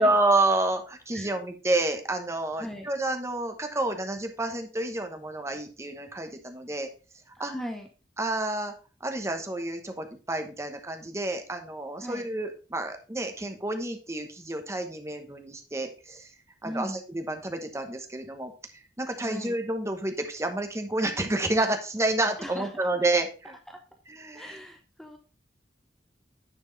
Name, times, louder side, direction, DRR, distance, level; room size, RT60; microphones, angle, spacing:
voice 1, 0.0-6.9 7.4-7.5 8.2-8.7 9.0-16.3 16.6-23.6 24.1-24.6, right 2 dB, 15° right, 6 dB, 1.0 m, -29 dB
voice 2, 2.6-2.9 7.3-7.9 12.0-12.3 16.6-17.0 19.2-19.6 22.4-22.7 23.7-23.8 24.3-25.2, equal, 5° left, 3 dB, 0.7 m, -38 dB
9.9 x 4.5 x 4.0 m, 0.35 s
head